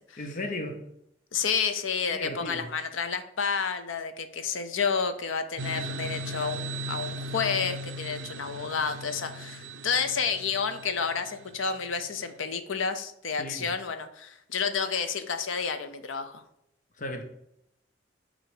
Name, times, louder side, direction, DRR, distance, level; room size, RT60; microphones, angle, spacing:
voice 1, 0.2-0.8 2.1-2.7 13.4-13.7 17.0-17.2, left 1 dB, 40° left, 5 dB, 0.7 m, -35 dB
voice 2, 1.3-16.4, left 6 dB, 85° left, 9 dB, 0.7 m, -30 dB
sound 1, 5.6-12.1, right 1 dB, 75° right, 0.5 m, -38 dB
6.3 x 4.0 x 4.9 m, 0.78 s
head